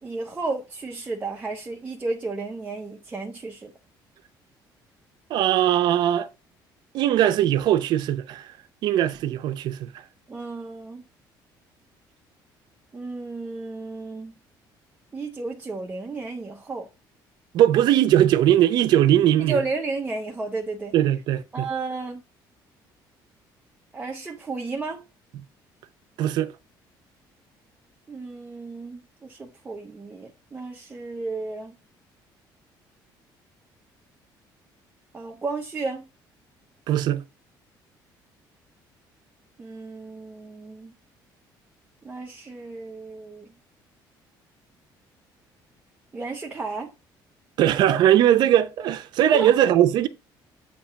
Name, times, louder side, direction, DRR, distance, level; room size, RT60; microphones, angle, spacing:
voice 1, 0.0-3.7 10.3-11.0 12.9-14.3 15.1-16.9 19.5-20.9 21.5-22.2 23.9-25.0 28.1-31.7 35.1-36.0 39.6-40.9 42.0-43.5 46.1-46.9 49.3-49.5, right 3 dB, 15° right, 0.8 m, -33 dB
voice 2, 5.3-6.3 6.9-8.5 8.8-9.9 17.5-19.6 20.9-21.7 26.2-26.5 36.9-37.2 47.6-50.1, right 11 dB, 60° right, 0.6 m, -20 dB
8.5 x 2.9 x 5.7 m
cardioid pair, 155°, 8 cm